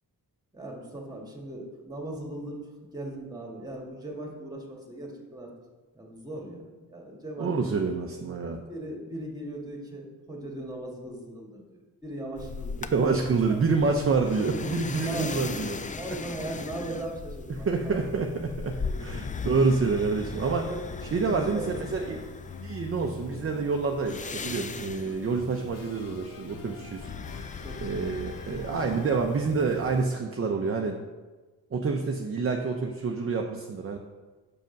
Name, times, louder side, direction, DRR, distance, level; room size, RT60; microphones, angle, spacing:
voice 1, 0.5-5.5 5.9-7.9 8.7-13.1 13.4-13.6 15.1-15.4 15.9-18.0 18.7-19.5 20.7-22.2 27.6-28.1, right 1 dB, 10° right, -1 dB, 1.8 m, -39 dB
voice 2, 7.4-8.6 12.9-15.8 17.5-20.7 21.1-22.2 22.6-27.5 27.8-31.0 31.7-34.0, right 4 dB, 35° right, 3 dB, 0.7 m, -27 dB
sound 1, 12.4-30.1, left 5 dB, 20° left, 0.3 m, -39 dB
sound 2, 21.7-29.6, left 6 dB, 55° left, 0.7 m, -46 dB
6.5 x 5.2 x 5.2 m, 1.3 s
cardioid pair, 80°, 40 cm